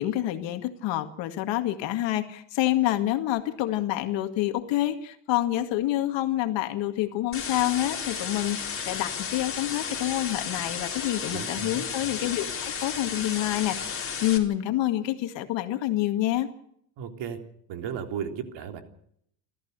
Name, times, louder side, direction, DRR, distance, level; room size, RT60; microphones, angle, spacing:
voice 1, 0.0-16.5, left 14 dB, 65° left, 7 dB, 2.1 m, -27 dB
sound 1, 7.3-14.4, left 6 dB, 25° left, 4.4 m, -33 dB
voice 2, 11.3-11.8 17.0-17.4 17.7-18.8, right 8 dB, 60° right, 6 dB, 3.6 m, -34 dB
28.5 x 14.5 x 6.7 m, 0.70 s
supercardioid pair, 100°, 48 cm